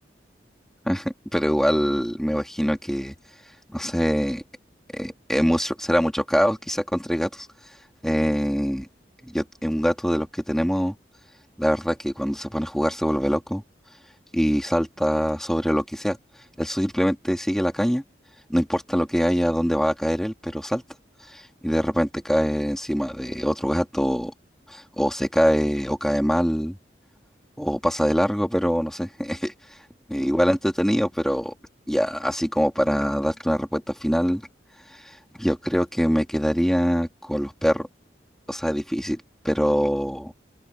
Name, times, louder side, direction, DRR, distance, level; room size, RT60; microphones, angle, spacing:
voice 1, 0.8-3.1 3.7-4.4 4.9-7.5 8.0-8.9 9.2-10.9 11.6-13.6 14.3-16.2 16.6-18.0 18.5-20.8 21.3-24.3 24.7-26.8 27.6-29.5 30.1-31.5 31.9-34.4 34.9-37.9 38.5-40.3, equal, ahead, 3.1 m, -24 dB
open air
head